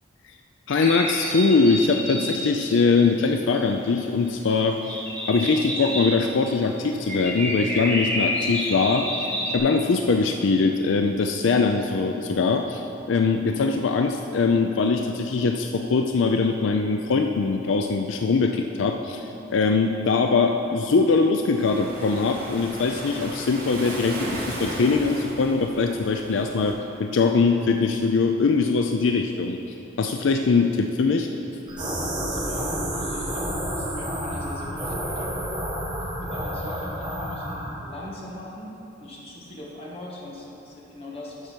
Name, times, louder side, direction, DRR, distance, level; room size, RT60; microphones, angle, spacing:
voice 1, 0.7-5.0 5.3-29.6 30.0-31.3, left 4 dB, 75° left, 5 dB, 0.4 m, -22 dB
sound 1, 0.7-3.6 3.9-4.0 4.2-4.5 4.9-9.6, equal, 5° left, 1.7 m, -29 dB
voice 2, 11.3-11.6 32.3-35.3 36.2-38.7 39.0-41.5, left 1 dB, 30° left, -4 dB, 1.6 m, -41 dB
Waves surf, 21.5-26.7, right 1 dB, 45° right, 2.2 m, -35 dB
sound 2, 31.7-37.7, equal, 20° right, 1.5 m, -30 dB
12.0 x 6.6 x 4.5 m, 3.0 s
head